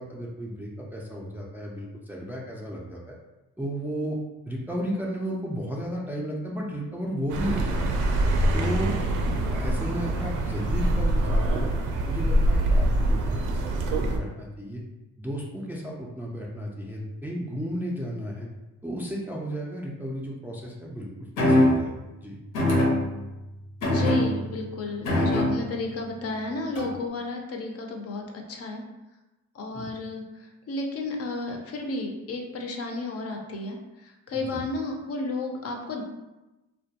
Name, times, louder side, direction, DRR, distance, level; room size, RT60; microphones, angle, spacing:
voice 1, 0.0-3.0 3.6-4.2 4.5-8.1 8.5-11.7 12.1-14.8 15.2-18.5 18.8-21.9 22.2-22.4 29.7-29.9 34.3-34.6, equal, 5° right, -3 dB, 0.3 m, -34 dB
Accelerating revving vroom, 7.3-14.2, right 1 dB, 80° right, 0.5 m, -24 dB
sound 1, 21.4-21.9 22.5-23.4 23.8-24.6 25.0-25.8 26.7-27.1, left 1 dB, 85° left, 0.7 m, -23 dB
voice 2, 23.8-28.8 29.5-36.0, left 3 dB, 50° left, 2 dB, 0.5 m, -33 dB
2.2 x 2.2 x 2.7 m, 1.0 s
cardioid pair, 90°, 30 cm